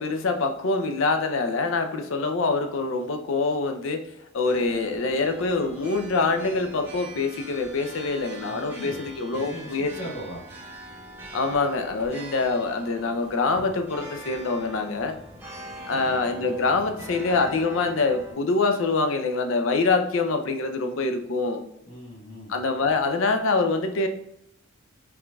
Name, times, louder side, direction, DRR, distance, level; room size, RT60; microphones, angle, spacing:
voice 1, 0.0-4.0 4.3-10.0 11.3-15.2 15.9-21.6 22.5-24.1, left 3 dB, 70° left, 6 dB, 0.5 m, -25 dB
sound 1, 4.4-18.3, right 1 dB, 10° right, 0.7 m, -42 dB
voice 2, 8.4-10.4 15.9-16.2 21.8-22.6, equal, 85° left, -3 dB, 1.3 m, -39 dB
4.7 x 2.6 x 2.3 m, 0.77 s
head